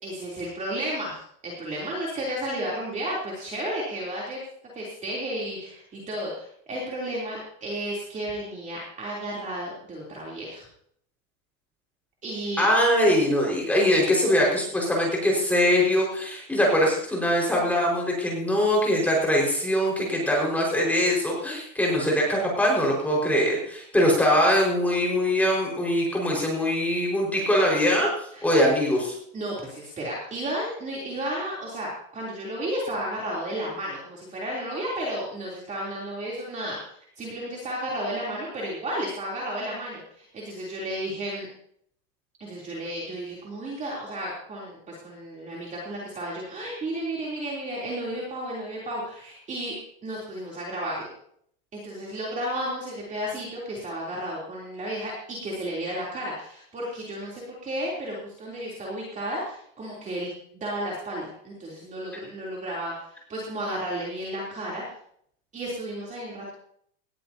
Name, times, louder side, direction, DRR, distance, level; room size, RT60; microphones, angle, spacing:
voice 1, 0.0-4.4 4.7-10.6 12.2-12.7 28.3-28.4 29.3-41.5 42.4-51.1 51.7-64.8 65.5-66.5, right 1 dB, 20° right, -4 dB, 3.3 m, -33 dB
voice 2, 12.6-29.1, equal, 5° left, -2 dB, 4.9 m, -22 dB
19.0 x 13.5 x 2.8 m, 0.66 s
supercardioid pair, 160°, 41 cm